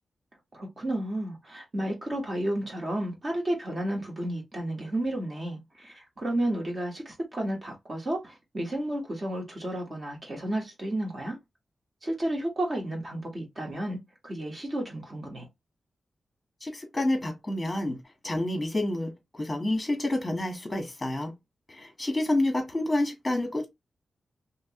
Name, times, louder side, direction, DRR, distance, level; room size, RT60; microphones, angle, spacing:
voice 1, 0.5-11.4 12.0-15.5, right 1 dB, 35° right, 1.3 m, -32 dB
voice 2, 16.6-21.3 21.7-23.7, left 1 dB, 15° left, 1.2 m, -29 dB
3.1 x 3.0 x 2.9 m
wide cardioid pair, 145°, 0 cm